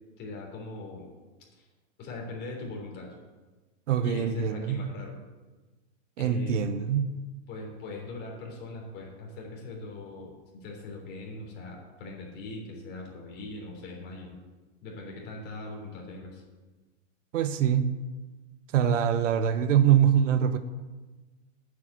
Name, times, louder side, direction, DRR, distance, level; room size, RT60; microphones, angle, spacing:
voice 1, 0.2-1.1 1.6-1.7 2.0-3.1 4.0-5.2 6.2-6.8 7.5-14.4 14.8-16.4, left 2 dB, 25° left, -1 dB, 3.5 m, -41 dB
voice 2, 3.9-4.9 6.2-7.2 17.3-17.9 18.7-20.6, right 9 dB, 70° right, 11 dB, 1.1 m, -24 dB
9.2 x 8.2 x 8.1 m, 1.2 s
supercardioid pair, 160°, 38 cm